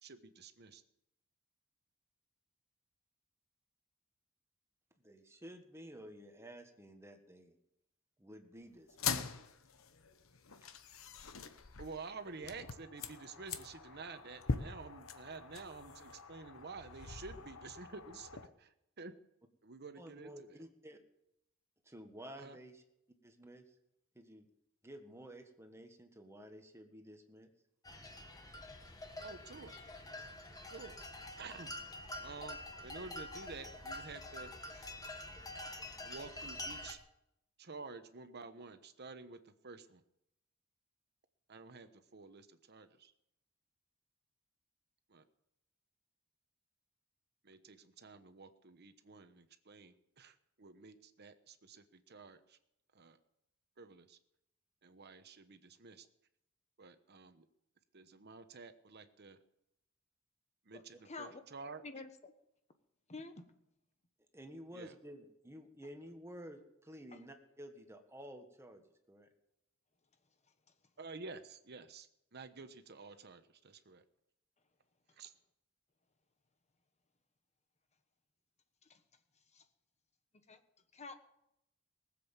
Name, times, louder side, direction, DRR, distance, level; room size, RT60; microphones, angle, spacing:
voice 1, 0.0-0.8 11.8-18.3 18.6-19.1 19.6-20.6 22.4-22.6 29.2-29.7 30.7-30.9 31.4-31.7 32.2-34.9 36.0-37.0 37.6-40.0 41.5-43.1 45.1-45.2 47.4-52.6 52.9-53.2 53.8-54.2 54.8-56.1 56.8-57.4 57.9-59.4 60.7-61.8 64.7-64.9 71.0-74.0 75.2-75.3, right 4 dB, 55° right, 10 dB, 1.1 m, -50 dB
voice 2, 5.0-7.5 8.2-9.2 20.0-21.0 21.8-22.8 23.2-23.6 24.1-24.5 24.8-27.5 64.3-69.3, equal, 15° right, 5 dB, 1.5 m, -52 dB
sound 1, 8.9-18.5, left 5 dB, 80° left, 1.0 m, -43 dB
sound 2, 27.8-36.9, left 1 dB, 20° left, 1.4 m, -47 dB
voice 3, 60.7-61.4 61.8-62.3 63.1-63.5 78.9-79.0 79.5-79.6 80.5-80.6 80.9-81.1, left 3 dB, 35° left, 8 dB, 1.3 m, -48 dB
19.0 x 7.8 x 7.2 m, 0.82 s
head